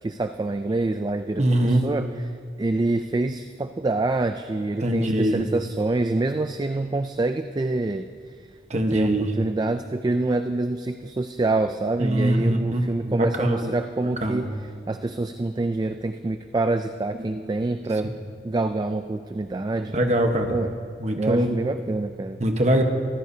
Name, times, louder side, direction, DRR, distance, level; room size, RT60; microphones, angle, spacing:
voice 1, 0.0-2.1 2.6-8.4 8.9-14.5 14.9-18.1 18.4-20.0 20.5-20.7 21.1-22.4, right 2 dB, 20° right, 8 dB, 0.3 m, -26 dB
voice 2, 1.4-1.9 4.8-5.4 8.7-9.3 12.0-13.7 14.2-14.4 17.2-17.4 19.9-20.5 21.0-21.5 22.4-22.8, right 1 dB, 40° right, 4 dB, 1.1 m, -22 dB
24.0 x 15.0 x 2.8 m, 2.1 s
head